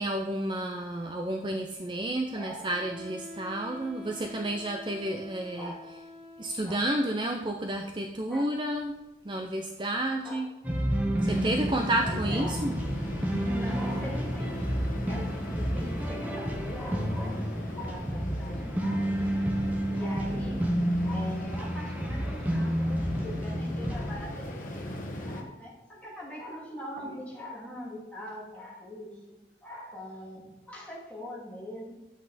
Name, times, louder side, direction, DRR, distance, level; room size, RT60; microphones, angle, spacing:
voice 1, 0.0-5.7 6.4-10.5 11.2-12.7, right 1 dB, 25° right, 3 dB, 0.6 m, -31 dB
voice 2, 2.3-2.9 5.6-5.8 6.7-6.8 8.3-8.5 10.2-10.4 11.3-11.4 12.0-12.7 13.4-17.4 17.7-19.1 19.9-20.6 21.0-24.8 25.1-31.9, equal, 10° left, -6 dB, 2.7 m, -42 dB
Wind instrument woodwind instrument, 2.7-6.8, left 1 dB, 50° right, 2.5 m, -46 dB
sound 1, 10.6-24.2, equal, 10° right, 0.9 m, -30 dB
sound 2, 11.2-25.4, left 1 dB, 45° left, 1.4 m, -39 dB
10.5 x 7.8 x 4.2 m, 1.1 s
head